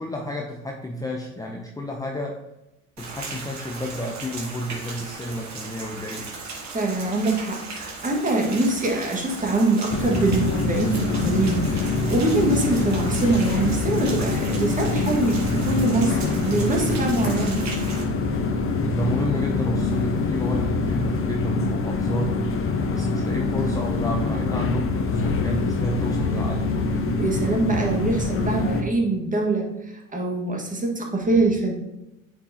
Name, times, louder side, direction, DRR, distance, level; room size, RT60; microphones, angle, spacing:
voice 1, 0.0-2.5 3.0-6.3 18.9-22.4 22.9-26.7, left 1 dB, 10° left, 1 dB, 0.7 m, -31 dB
Rain, 3.0-18.0, right 3 dB, 45° right, 1.9 m, -37 dB
voice 2, 6.7-17.6 27.2-31.7, right 2 dB, 20° right, 0 dB, 1.7 m, -24 dB
sound 1, 9.9-28.8, left 3 dB, 30° left, 1.0 m, -24 dB
8.8 x 4.6 x 2.9 m, 0.93 s
hypercardioid pair, 70°, 40 cm